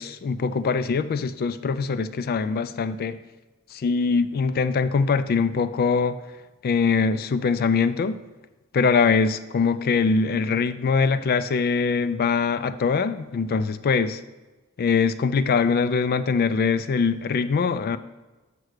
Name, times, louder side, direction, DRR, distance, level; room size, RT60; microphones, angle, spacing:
voice 1, 0.0-3.2 3.7-6.2 6.6-8.2 8.7-14.2 14.8-18.0, left 5 dB, 45° left, 13 dB, 0.3 m, -23 dB
6.4 x 4.6 x 6.5 m, 1.2 s
head